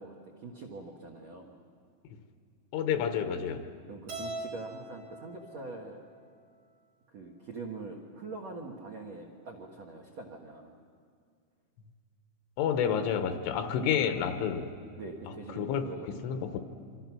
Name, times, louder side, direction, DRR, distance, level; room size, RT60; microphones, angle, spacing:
voice 1, 0.0-1.6 3.9-6.0 7.1-10.8 14.9-16.4, right 3 dB, 75° right, 2 dB, 1.5 m, -44 dB
voice 2, 2.7-3.6 12.6-14.7 15.6-15.9 16.2-16.6, left 8 dB, 80° left, 7 dB, 3.5 m, -29 dB
Keyboard (musical), 4.1-6.4, right 2 dB, 45° right, 1.9 m, -42 dB
27.0 x 25.5 x 6.1 m, 2.2 s
omnidirectional pair, 5.7 m